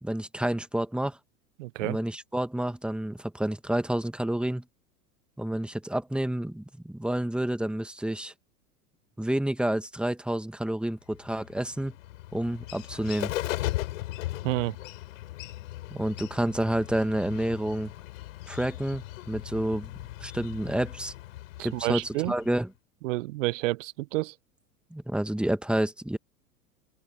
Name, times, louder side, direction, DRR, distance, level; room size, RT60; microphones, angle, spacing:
voice 1, 0.0-1.2 1.8-4.6 5.4-8.3 9.2-11.9 12.3-13.3 15.9-17.9 18.5-19.9 20.2-21.1 21.6-22.7 24.9-26.2, right 1 dB, ahead, 1.8 m, -29 dB
voice 2, 1.6-2.0 14.4-14.8 21.6-22.3 23.0-24.3, right 20 dB, 55° right, 1.1 m, -29 dB
Bird, 11.1-22.6, left 16 dB, 60° left, 8.0 m, -38 dB
figure-of-eight pair, 85°, 44 cm